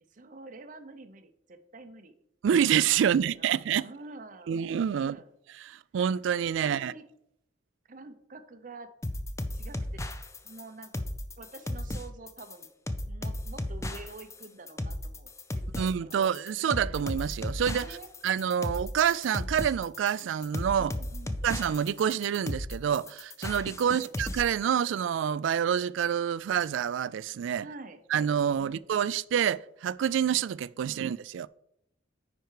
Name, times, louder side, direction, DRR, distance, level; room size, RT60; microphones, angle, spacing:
voice 1, 0.1-2.1 3.0-4.6 4.9-5.3 6.6-7.0 7.9-8.9 9.5-10.0 10.4-11.1 11.4-12.7 13.0-16.2 17.6-18.1 20.8-21.5 23.8-24.1 27.6-28.0, right 3 dB, 45° right, 0.7 m, -47 dB
voice 2, 2.4-3.9 4.5-5.2 5.6-6.9 15.8-18.0 18.2-20.9 21.4-27.7 28.1-31.5, right 8 dB, 80° right, 0.3 m, -27 dB
sound 1, 9.0-24.4, left 1 dB, 15° left, 0.5 m, -35 dB
9.5 x 4.5 x 4.8 m
head